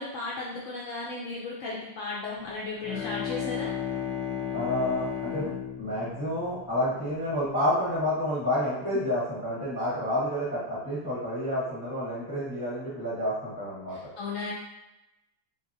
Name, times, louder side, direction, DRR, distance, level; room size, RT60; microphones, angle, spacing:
voice 1, 0.0-3.7 13.9-14.5, left 3 dB, 70° left, -4 dB, 0.7 m, -35 dB
Bowed string instrument, 2.6-7.4, left 8 dB, 85° left, 1.2 m, -34 dB
voice 2, 4.5-5.5 5.8-14.1, left 1 dB, 15° left, -10 dB, 0.8 m, -29 dB
2.8 x 2.7 x 2.6 m, 0.90 s
omnidirectional pair, 1.8 m